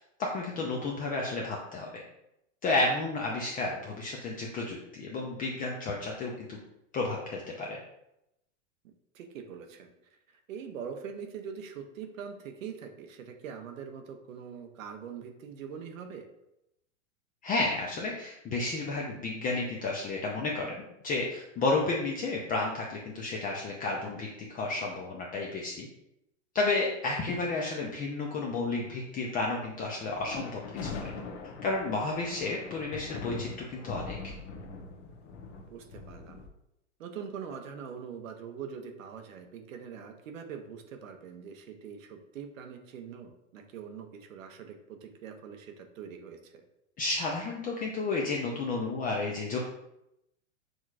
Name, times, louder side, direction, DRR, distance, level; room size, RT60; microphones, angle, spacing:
voice 1, 0.2-2.0 2.6-6.6 6.9-7.8 17.4-20.8 21.0-25.9 26.5-31.1 31.6-34.2 47.0-49.6, left 3 dB, 20° left, -1 dB, 0.5 m, -32 dB
voice 2, 9.1-9.9 10.3-16.3 35.7-36.4 37.0-46.6, right 7 dB, 85° right, 5 dB, 0.8 m, -43 dB
sound 1, 30.1-36.5, left 4 dB, 60° left, 0.9 m, -41 dB
6.2 x 3.1 x 2.4 m, 0.84 s
hypercardioid pair, 125°, 38 cm